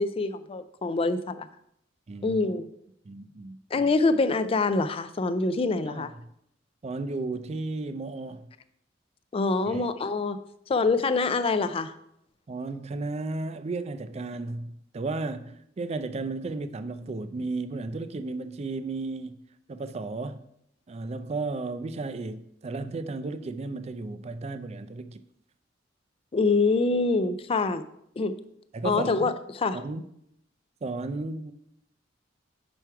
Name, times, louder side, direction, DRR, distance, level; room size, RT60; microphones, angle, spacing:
voice 1, 0.0-1.5 2.2-2.7 3.7-6.1 9.3-10.4 10.7-11.9 26.3-27.8 28.2-28.4 28.8-29.8, left 3 dB, 30° left, 0.4 m, -25 dB
voice 2, 2.1-2.4 3.0-3.6 5.9-6.1 6.8-8.5 9.7-9.9 12.5-19.4 19.7-20.4 20.9-25.2 28.7-29.3 29.7-30.0 30.8-31.5, right 3 dB, 35° right, 0.4 m, -34 dB
6.1 x 4.6 x 4.6 m
head